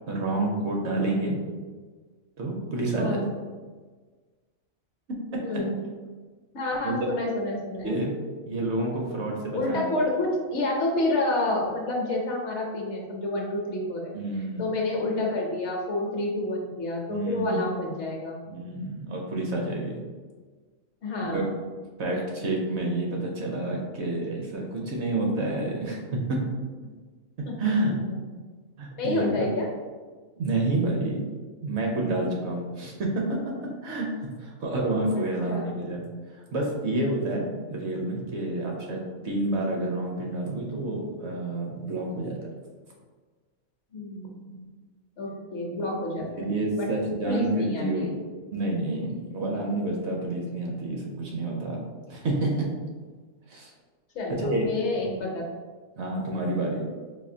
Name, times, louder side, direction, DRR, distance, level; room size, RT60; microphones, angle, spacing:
voice 1, 0.1-1.4 2.4-3.2 5.3-5.6 6.8-7.0 7.8-8.1 8.5-9.8 14.1-14.6 17.1-17.6 18.5-20.0 21.3-21.4 22.0-26.4 27.4-28.0 28.8-29.5 30.4-31.3 31.6-36.0 36.5-42.3 46.4-48.2 48.5-51.8 52.1-52.7 53.5-53.7 54.3-54.7 55.0-55.2 56.0-56.8, right 2 dB, 65° right, 0 dB, 0.8 m, -29 dB
voice 2, 2.9-3.3 5.4-5.8 6.5-8.0 9.5-14.1 14.6-18.4 21.0-21.5 27.4-28.2 29.0-29.7 35.1-35.7 43.9-44.6 45.2-46.9 47.2-47.4 47.7-48.1 49.4-49.5 54.1-55.4, left 2 dB, 65° left, 0 dB, 0.9 m, -29 dB
4.1 x 2.6 x 2.7 m, 1.4 s
omnidirectional pair, 1.4 m